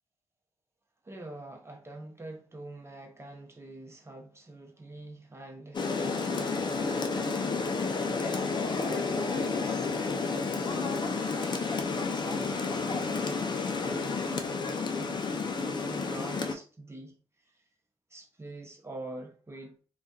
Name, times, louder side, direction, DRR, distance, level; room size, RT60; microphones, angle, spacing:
voice 1, 1.0-15.2 15.6-17.1 17.4-17.6 18.1-19.7, right 2 dB, 25° right, 0.7 m, -45 dB
Rain, 5.7-16.5, left 4 dB, 40° left, 0.5 m, -31 dB
2.5 x 2.3 x 2.2 m
cardioid pair, 65°, 11 cm